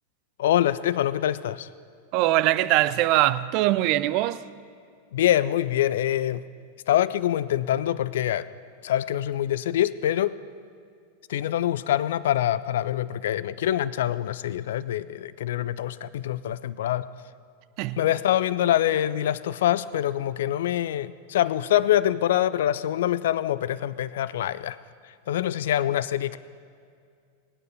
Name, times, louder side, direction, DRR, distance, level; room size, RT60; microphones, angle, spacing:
voice 1, 0.4-1.7 5.1-6.4 6.9-8.5 8.8-10.4 11.3-17.1 18.0-24.8 25.0-26.4, left 12 dB, 60° left, 0.4 m, -25 dB
voice 2, 2.1-4.4 17.8-18.0, right 16 dB, 45° right, 0.4 m, -22 dB
18.5 x 9.3 x 5.5 m
figure-of-eight pair, 90°, 0 cm